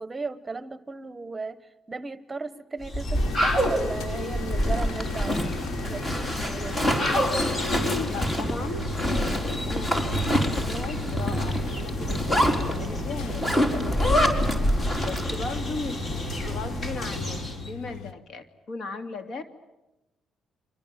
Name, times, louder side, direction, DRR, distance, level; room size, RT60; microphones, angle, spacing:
voice 1, 0.0-1.6 1.9-5.4 5.8-6.9, right 3 dB, 20° right, 14 dB, 1.2 m, -35 dB
sound 1, 2.8-17.7, equal, 40° left, 4.8 m, -29 dB
sound 2, 3.1-18.1, left 6 dB, 85° left, 1.3 m, -37 dB
Zipper (clothing), 4.4-15.6, equal, 25° left, 4.4 m, -28 dB
voice 2, 8.1-14.2 15.0-19.4, left 3 dB, 60° left, 8 dB, 2.6 m, -37 dB
29.5 x 24.5 x 7.5 m, 0.98 s
cardioid pair, 90°, 0 cm